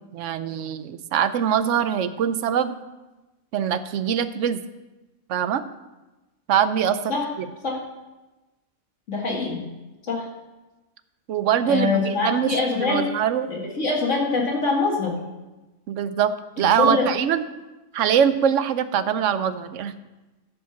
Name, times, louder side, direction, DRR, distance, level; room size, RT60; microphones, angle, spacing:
voice 1, 0.0-2.8 3.5-4.6 5.3-5.6 6.5-7.5 11.3-13.5 15.9-17.4 17.9-19.9, right 8 dB, 70° right, 12 dB, 0.9 m, -23 dB
voice 2, 9.1-9.6 10.1-10.2 11.7-13.0 13.5-15.1 16.6-17.1, left 4 dB, 65° left, -2 dB, 2.5 m, -24 dB
11.5 x 5.2 x 7.0 m, 1.1 s
omnidirectional pair, 1.4 m